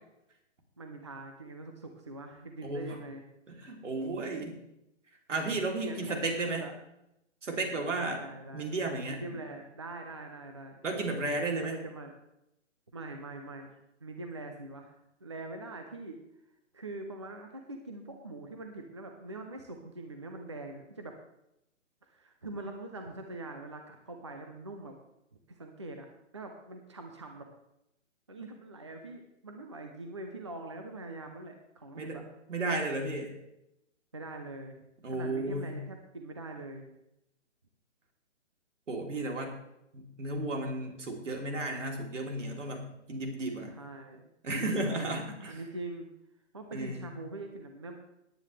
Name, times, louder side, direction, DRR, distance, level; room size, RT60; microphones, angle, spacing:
voice 1, 0.8-3.2 5.8-6.7 7.9-8.7 9.1-10.8 11.6-12.1 12.9-13.7 14.0-16.2 16.7-21.2 22.0-24.9 25.5-26.1 26.3-27.4 28.3-32.2 34.1-34.8 35.1-36.9 43.7-45.1 45.4-46.1 46.5-48.0, right 2 dB, 25° right, 4 dB, 0.6 m, -43 dB
voice 2, 2.6-3.0 3.5-4.6 5.3-6.7 7.4-8.2 8.5-9.4 10.8-11.8 32.0-32.2 32.5-33.3 35.0-35.8 38.9-39.6 39.9-43.8 44.4-45.6 46.7-47.1, right 2 dB, 75° right, 2 dB, 3.3 m, -34 dB
18.0 x 9.7 x 3.3 m, 0.84 s
hypercardioid pair, 180°, 37 cm